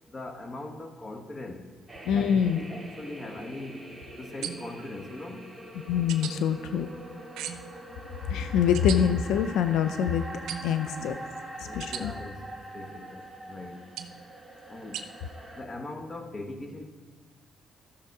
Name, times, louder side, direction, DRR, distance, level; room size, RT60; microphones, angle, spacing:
voice 1, 0.1-1.7 2.1-3.9 4.2-5.5 8.9-9.0 11.0-11.3 11.6-13.9 14.6-15.1 15.5-16.8, left 2 dB, 30° left, 5 dB, 1.4 m, -40 dB
sound 1, 1.9-15.6, right 1 dB, 15° right, 2.1 m, -44 dB
voice 2, 2.0-2.6 5.9-6.9 8.3-10.2 10.6-11.1 11.7-12.1, left 8 dB, 90° left, 10 dB, 0.5 m, -25 dB
sound 2, 4.4-4.9 6.1-6.3 7.4-7.8 8.7-9.0 10.5-10.8 11.8-12.0 14.0-14.2 14.9-15.1, right 9 dB, 85° right, 0.7 m, -37 dB
13.5 x 6.8 x 4.7 m, 1.5 s
cardioid pair, 90°, 0 cm